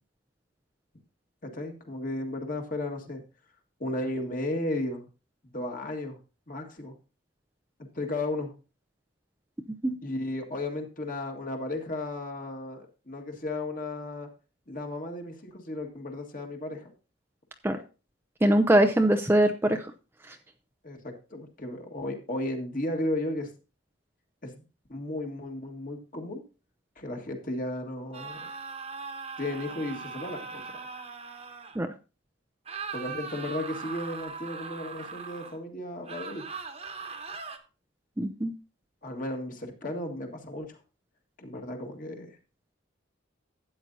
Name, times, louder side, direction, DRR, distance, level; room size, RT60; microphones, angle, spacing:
voice 1, 1.4-3.2 3.8-5.1 5.5-6.2 6.5-6.9 7.9-8.5 10.0-14.3 14.7-16.9 20.8-23.5 24.4-24.6 24.9-26.4 27.0-28.4 29.4-30.6 32.9-36.5 39.0-40.8 41.4-42.4, left 1 dB, 40° left, 3 dB, 1.7 m, -34 dB
voice 2, 18.4-19.9 31.8-31.9 38.2-38.5, right 1 dB, 10° right, 6 dB, 0.5 m, -22 dB
sound 1, 28.1-31.8 32.6-35.6 36.0-37.6, right 5 dB, 30° right, 1.1 m, -40 dB
13.0 x 8.7 x 2.7 m, 0.32 s
head